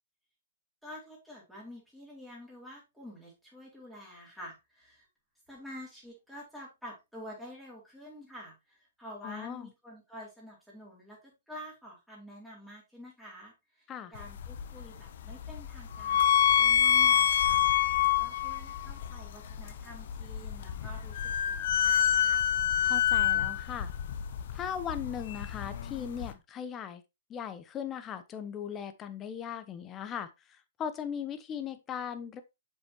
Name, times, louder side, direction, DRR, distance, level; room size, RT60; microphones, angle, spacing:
voice 1, 0.8-5.1 5.5-16.2 16.6-22.4, left 1 dB, ahead, 4.4 m, -48 dB
voice 2, 9.2-9.7 13.9-14.1 22.8-23.9 24.5-27.0 27.3-32.4, left 8 dB, 25° left, 0.8 m, -38 dB
sound 1, 14.2-26.3, left 9 dB, 55° left, 0.8 m, -27 dB
7.4 x 5.7 x 3.0 m
hypercardioid pair, 125°, 0 cm